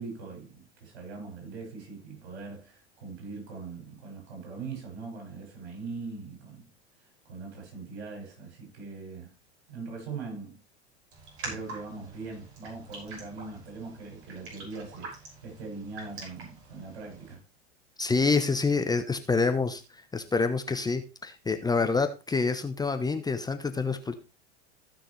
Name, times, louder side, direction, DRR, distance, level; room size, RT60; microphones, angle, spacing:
voice 1, 0.0-6.7 7.2-9.3 9.7-10.6 11.4-17.4, right 4 dB, 70° right, 6.9 m, -41 dB
Raindrop, 11.1-17.3, right 3 dB, 40° right, 6.1 m, -45 dB
voice 2, 18.0-24.1, left 4 dB, 10° left, 0.9 m, -27 dB
15.5 x 6.3 x 3.3 m
hypercardioid pair, 95°, 34 cm